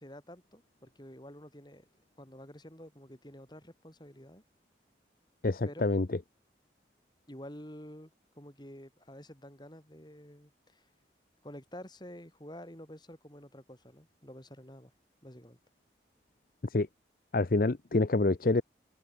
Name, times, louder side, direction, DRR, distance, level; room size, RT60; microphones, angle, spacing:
voice 1, 0.0-1.9 2.2-4.4 5.6-5.9 7.3-8.1 8.4-10.9 11.4-14.9 15.2-15.6, equal, 25° left, 6.4 m, -49 dB
voice 2, 5.4-6.1 16.7-16.9 17.3-18.6, left 2 dB, 55° left, 0.7 m, -27 dB
head